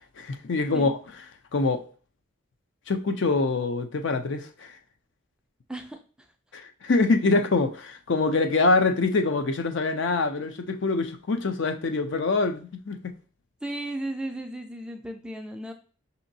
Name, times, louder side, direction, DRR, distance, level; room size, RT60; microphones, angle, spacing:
voice 1, 0.2-1.0 1.5-1.8 2.9-4.8 6.5-13.1, left 3 dB, 60° left, 0.5 m, -25 dB
voice 2, 5.7-6.0 13.6-15.7, right 1 dB, 5° right, 0.3 m, -35 dB
5.8 x 2.8 x 2.7 m
head